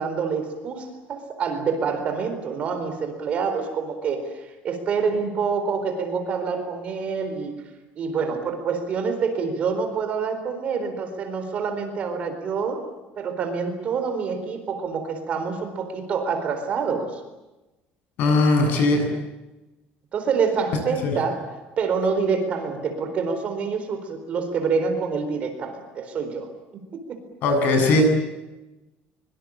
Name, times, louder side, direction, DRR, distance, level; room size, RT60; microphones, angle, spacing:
voice 1, 0.0-7.5 8.0-12.8 13.2-17.2 20.1-21.5 21.8-26.5 26.7-27.2, right 5 dB, 35° right, 7 dB, 4.3 m, -27 dB
voice 2, 18.2-19.1 21.0-21.1 27.4-28.0, left 3 dB, 50° left, 5 dB, 7.9 m, -19 dB
24.5 x 24.0 x 8.8 m, 1.0 s
cardioid pair, 180°, 4 cm